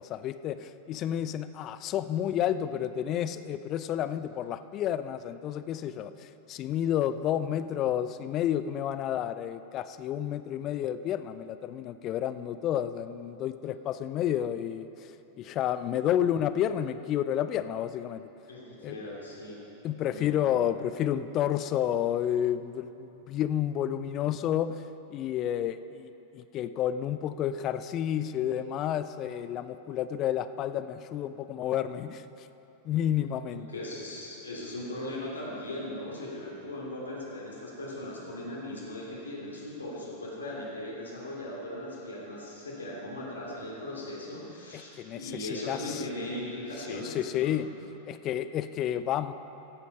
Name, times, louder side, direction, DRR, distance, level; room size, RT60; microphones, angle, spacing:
voice 1, 0.0-18.3 18.8-19.0 19.8-24.8 25.1-32.5 32.8-33.7 45.0-46.0 46.9-47.7 48.1-49.3, left 10 dB, 35° left, 13 dB, 0.4 m, -30 dB
voice 2, 18.5-19.6 20.0-20.5 33.7-47.6, left 1 dB, 75° left, -4 dB, 3.1 m, -38 dB
15.5 x 8.4 x 5.4 m, 3.0 s
figure-of-eight pair, 90°, 0 cm